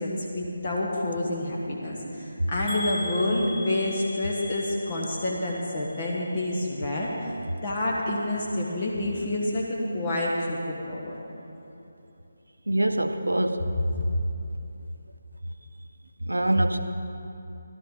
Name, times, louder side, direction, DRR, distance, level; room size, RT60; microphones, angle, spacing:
voice 1, 0.0-7.4 7.6-11.1 13.9-14.0, left 1 dB, 35° left, -3 dB, 1.3 m, -28 dB
sound 1, 2.7-6.6 6.9-7.6 8.0-8.2 8.5-8.6, left 3 dB, 5° left, 1.3 m, -40 dB
voice 2, 12.7-13.7 16.3-16.8, right 1 dB, 75° right, 8 dB, 0.7 m, -24 dB
14.5 x 12.0 x 3.8 m, 2.9 s
figure-of-eight pair, 155°, 0 cm